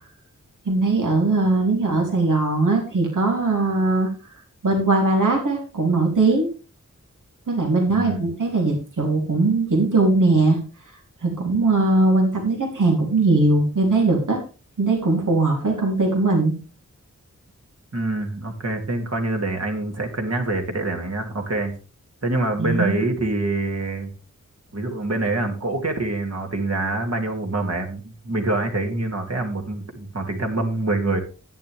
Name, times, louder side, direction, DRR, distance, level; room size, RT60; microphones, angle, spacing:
voice 1, 0.6-4.1 4.6-6.5 7.5-10.6 11.2-14.4 14.8-16.5 22.6-22.9, right 2 dB, 80° right, 0 dB, 3.2 m, -20 dB
voice 2, 7.9-8.3 17.9-21.7 22.2-24.1 24.7-31.2, right 2 dB, 55° right, 2 dB, 2.6 m, -25 dB
11.0 x 10.0 x 3.5 m, 0.34 s
wide cardioid pair, 90°, 31 cm